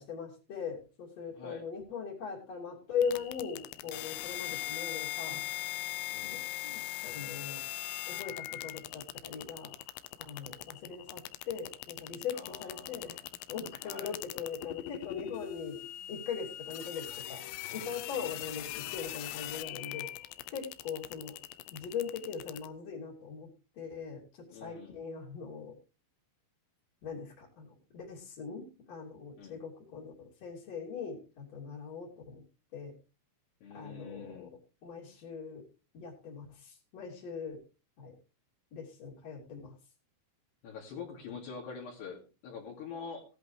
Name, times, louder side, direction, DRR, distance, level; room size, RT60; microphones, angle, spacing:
voice 1, 0.0-5.4 6.2-7.6 8.1-9.8 10.2-13.2 13.5-15.8 16.1-17.4 17.7-20.1 20.5-21.4 21.7-23.5 23.8-25.7 27.0-32.4 32.7-33.0 33.7-34.5 34.8-35.7 35.9-37.6 38.0-38.2 38.7-39.8, left 6 dB, 40° left, -5 dB, 3.6 m, -40 dB
voice 2, 1.3-1.6 6.1-6.4 12.3-13.2 13.8-14.2 18.1-18.4 24.5-25.0 29.4-29.6 33.6-34.5 40.6-43.2, left 5 dB, 65° left, -2 dB, 4.5 m, -45 dB
sound 1, 3.0-22.7, left 16 dB, 80° left, 2.6 m, -41 dB
17.0 x 11.0 x 3.3 m, 0.33 s
omnidirectional pair, 5.4 m